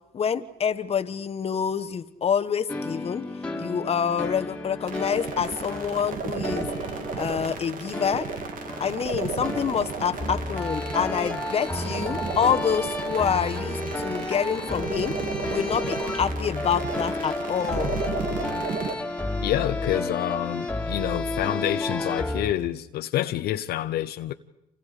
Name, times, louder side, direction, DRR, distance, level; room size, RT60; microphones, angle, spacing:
voice 1, 0.1-3.2 3.6-6.7 7.1-8.3 8.8-15.2 15.5-18.0, left 7 dB, 35° left, 1.2 m, -27 dB
sound 1, 2.7-22.5, left 2 dB, 5° left, 2.5 m, -32 dB
sound 2, 4.9-19.0, right 5 dB, 55° right, 2.2 m, -34 dB
voice 2, 19.4-24.3, left 13 dB, 70° left, 0.8 m, -28 dB
29.0 x 27.5 x 5.0 m
cardioid pair, 110°, 17 cm